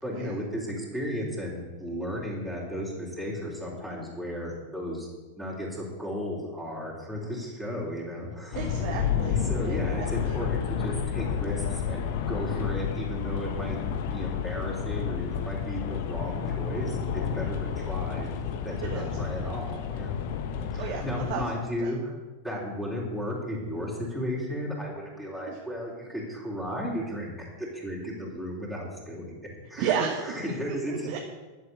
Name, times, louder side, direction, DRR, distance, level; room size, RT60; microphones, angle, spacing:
voice 1, 0.0-5.1 5.4-8.7 9.5-13.8 14.1-18.3 18.6-20.2 20.7-22.1 22.4-29.4 29.7-29.9 30.2-31.2, equal, ahead, -5 dB, 3.8 m, -34 dB
sound 1, 8.5-21.4, left 7 dB, 50° left, 1.2 m, -31 dB
voice 2, 8.5-10.4 18.8-19.1 20.8-21.9 25.5-25.6 29.8-31.2, right 7 dB, 45° right, 1 dB, 1.6 m, -33 dB
11.5 x 7.6 x 8.5 m, 1.2 s
figure-of-eight pair, 90°, 0 cm